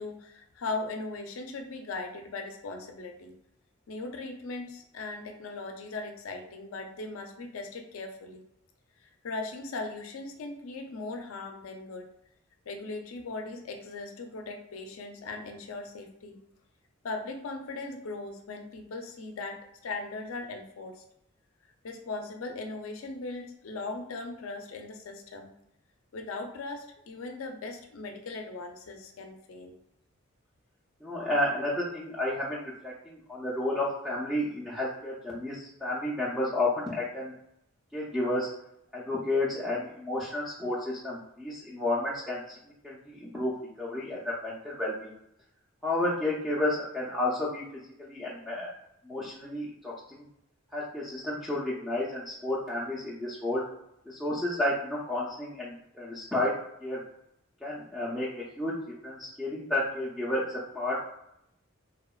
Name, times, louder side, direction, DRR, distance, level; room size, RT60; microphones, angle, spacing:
voice 1, 0.0-3.3 3.9-8.4 9.0-12.1 12.7-16.4 17.0-21.0 21.8-25.5 26.1-29.8, left 3 dB, 75° left, 4 dB, 0.4 m, -39 dB
voice 2, 31.0-37.3 37.9-38.5 38.9-42.5 42.8-43.5 43.8-45.1 45.8-47.6 48.0-48.7 49.0-50.3 50.7-53.6 54.1-56.5 56.8-57.0 57.6-58.7 59.0-61.1, left 1 dB, ahead, -7 dB, 0.3 m, -31 dB
2.8 x 2.1 x 2.3 m, 0.78 s
head